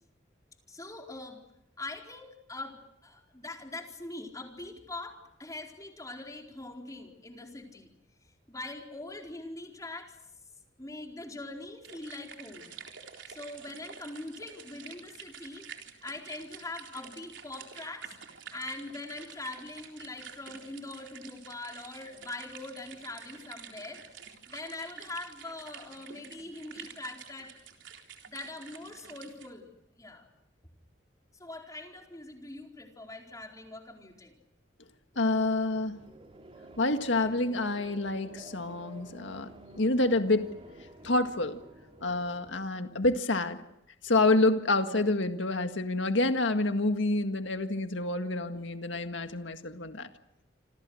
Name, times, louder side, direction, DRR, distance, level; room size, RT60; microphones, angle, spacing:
voice 1, 0.7-1.4 1.8-7.9 8.5-10.2 10.8-12.8 13.3-15.7 16.0-18.1 18.5-27.5 28.3-29.7 30.0-30.3 31.3-34.4, left 2 dB, 20° left, 4.4 m, -42 dB
sound 1, 11.8-29.5, right 7 dB, 75° right, 3.8 m, -49 dB
sound 2, 35.1-42.5, right 1 dB, 30° right, 3.3 m, -51 dB
voice 2, 35.2-36.0 36.8-40.5 41.0-41.6 42.0-43.6 44.0-50.1, left 2 dB, 75° left, 1.9 m, -28 dB
28.0 x 26.5 x 6.5 m
head